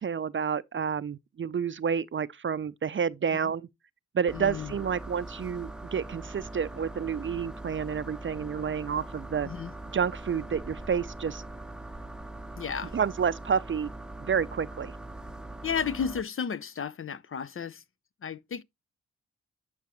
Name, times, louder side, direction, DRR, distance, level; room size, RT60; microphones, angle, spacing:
voice 1, 0.0-3.7 4.1-9.5 9.9-11.4 12.9-13.9 14.2-14.9, right 7 dB, 40° right, 0.5 m, -29 dB
voice 2, 4.3-4.8 9.4-9.7 12.6-12.9 15.6-17.8 18.2-18.6, left 7 dB, 40° left, 0.6 m, -33 dB
sound 1, 4.3-16.2, right 2 dB, ahead, 0.7 m, -42 dB
9.4 x 5.7 x 3.0 m
supercardioid pair, 45°, 32 cm